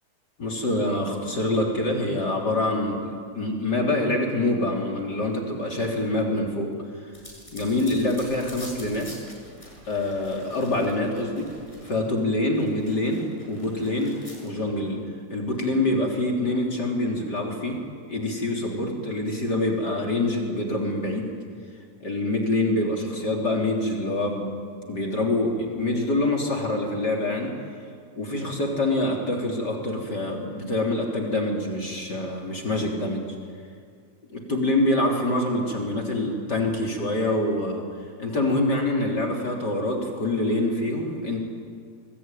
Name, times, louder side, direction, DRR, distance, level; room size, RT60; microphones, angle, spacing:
voice 1, 0.4-6.8 7.5-9.1 9.9-11.5 11.8-15.0 15.3-21.3 22.0-24.5 24.9-27.6 28.2-33.3 34.3-37.9 38.2-41.4, left 1 dB, 30° left, 0 dB, 3.8 m, -25 dB
sound 1, 7.1-12.2 12.6-14.5, left 1 dB, 10° left, 7.7 m, -46 dB
27.5 x 22.0 x 9.2 m, 2.1 s
omnidirectional pair, 3.6 m